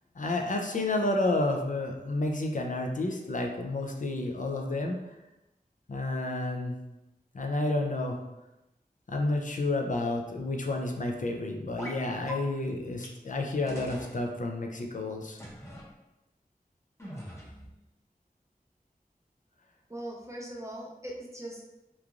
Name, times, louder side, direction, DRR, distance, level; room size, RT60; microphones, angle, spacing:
voice 1, 0.2-5.0 5.9-6.8 7.3-8.2 9.1-15.4, left 2 dB, 55° left, 2 dB, 0.4 m, -30 dB
sound 1, 11.8-12.0 12.3-12.4 13.0-13.1 13.7-14.1 15.4-15.9 17.0-17.7, equal, 20° left, 0.7 m, -41 dB
voice 2, 19.9-21.8, right 1 dB, 20° right, -2 dB, 0.5 m, -40 dB
3.1 x 2.4 x 2.3 m, 0.95 s
wide cardioid pair, 50°, 16 cm